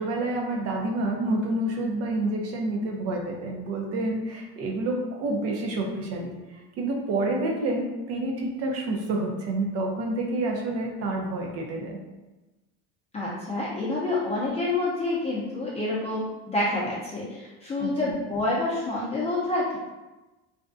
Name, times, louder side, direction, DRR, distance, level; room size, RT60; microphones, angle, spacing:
voice 1, 0.0-12.0 17.8-18.2, right 2 dB, 50° right, 0 dB, 0.6 m, -28 dB
voice 2, 13.1-19.8, left 2 dB, 20° left, -8 dB, 0.5 m, -28 dB
2.5 x 2.2 x 2.5 m, 1.1 s
cardioid pair, 130°, 32 cm